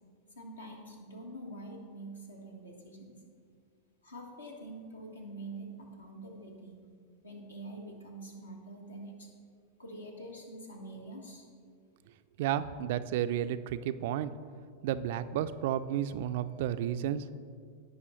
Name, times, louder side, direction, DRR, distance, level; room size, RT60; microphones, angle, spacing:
voice 1, 0.3-3.1 4.0-6.8 7.2-9.3 9.8-11.5, right 1 dB, 75° left, 1 dB, 1.3 m, -45 dB
voice 2, 12.4-14.3 14.8-17.3, right 10 dB, 50° right, 13 dB, 0.3 m, -32 dB
15.5 x 5.4 x 3.1 m, 2.1 s
figure-of-eight pair, 90°, 0 cm